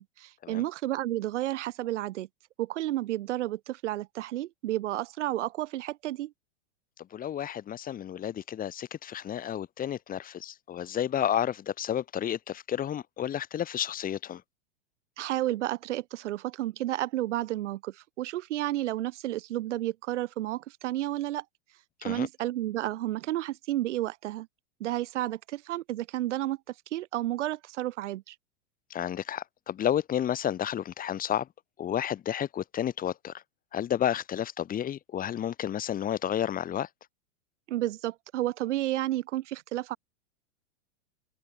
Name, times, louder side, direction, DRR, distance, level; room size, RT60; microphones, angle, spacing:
voice 1, 0.0-2.3 2.6-6.3 15.2-21.4 22.0-24.5 24.8-26.6 26.9-28.3 37.7-40.0, right 15 dB, 70° right, 1.7 m, -31 dB
voice 2, 7.1-14.4 22.0-22.3 28.9-31.5 31.8-33.3 33.7-36.9, left 10 dB, 25° left, 2.0 m, -31 dB
open air
hypercardioid pair, 130°, 37 cm